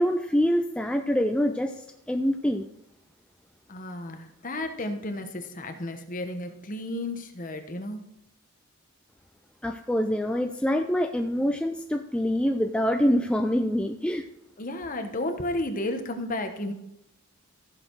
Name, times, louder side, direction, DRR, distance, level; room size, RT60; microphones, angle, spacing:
voice 1, 0.0-2.7 9.6-14.2, equal, 5° left, 4 dB, 0.4 m, -25 dB
voice 2, 3.7-8.0 14.6-16.7, left 1 dB, 35° left, 6 dB, 1.1 m, -33 dB
14.5 x 6.6 x 4.6 m, 0.84 s
head